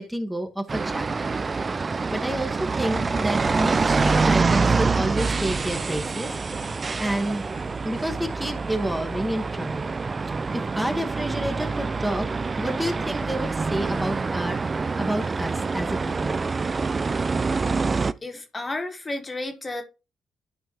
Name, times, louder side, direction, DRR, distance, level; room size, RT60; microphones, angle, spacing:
voice 1, 0.0-1.4 2.1-6.7 7.0-7.5 7.8-10.0 10.5-14.6 15.0-16.4, right 1 dB, 5° right, 1.5 m, -29 dB
sound 1, 0.7-18.1, right 4 dB, 40° right, 0.4 m, -26 dB
sound 2, 2.9-10.3, left 4 dB, 85° left, 2.5 m, -45 dB
voice 2, 18.2-19.8, left 2 dB, 35° left, 1.6 m, -32 dB
12.0 x 4.6 x 3.0 m
supercardioid pair, 50°, 0 cm